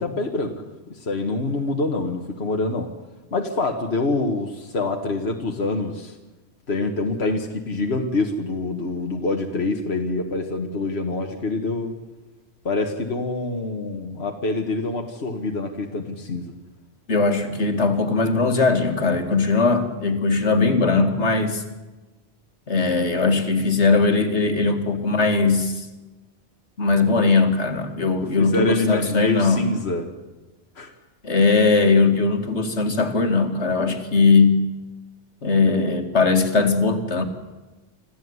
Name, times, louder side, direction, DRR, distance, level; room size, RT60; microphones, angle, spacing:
voice 1, 0.0-2.9 3.3-6.2 6.7-11.9 12.7-16.5 28.4-30.1 30.8-30.9, left 2 dB, 70° left, 3 dB, 2.0 m, -26 dB
voice 2, 17.1-21.6 22.7-25.9 26.8-29.7 31.2-34.7 35.4-37.2, left 4 dB, 85° left, 6 dB, 2.6 m, -19 dB
26.5 x 15.5 x 9.7 m, 1.1 s
omnidirectional pair, 1.1 m